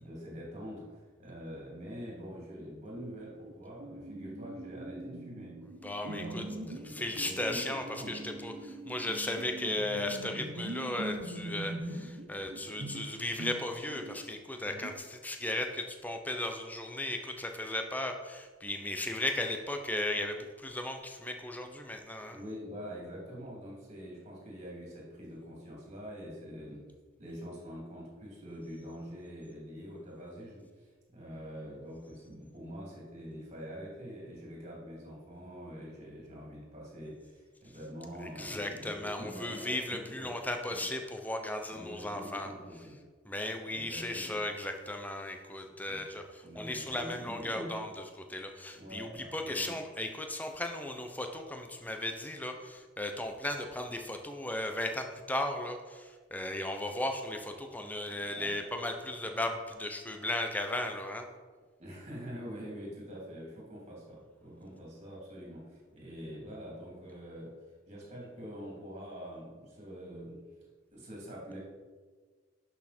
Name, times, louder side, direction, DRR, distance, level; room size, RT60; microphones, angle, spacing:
voice 1, 0.0-5.6 6.0-8.2 22.3-26.9 27.2-40.4 40.7-40.9 41.7-43.0 43.7-44.4 45.8-46.1 46.4-47.8 48.7-49.8 58.2-58.5 61.8-70.4 70.9-71.6, equal, 30° right, -3 dB, 3.1 m, -45 dB
sound 1, 3.0-3.5 3.8-14.3 14.7-14.9, right 2 dB, 55° right, 0.8 m, -43 dB
voice 2, 5.8-6.4 6.8-22.4 38.4-42.5 43.3-47.9 48.2-61.2, left 1 dB, 10° left, 4 dB, 0.7 m, -36 dB
11.0 x 6.4 x 4.4 m, 1.4 s
head